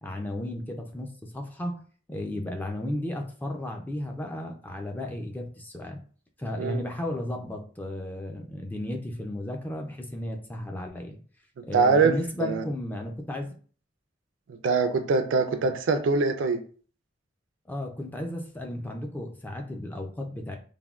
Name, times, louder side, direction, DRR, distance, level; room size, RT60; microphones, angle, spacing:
voice 1, 0.0-1.8 2.1-6.0 6.4-11.2 11.6-13.5 15.6-15.7 17.7-20.6, left 1 dB, 10° left, 2 dB, 0.3 m, -34 dB
voice 2, 11.7-12.1 12.4-12.6 14.5-16.6, right 4 dB, 75° right, 8 dB, 0.3 m, -23 dB
3.3 x 2.1 x 2.3 m, 0.42 s
head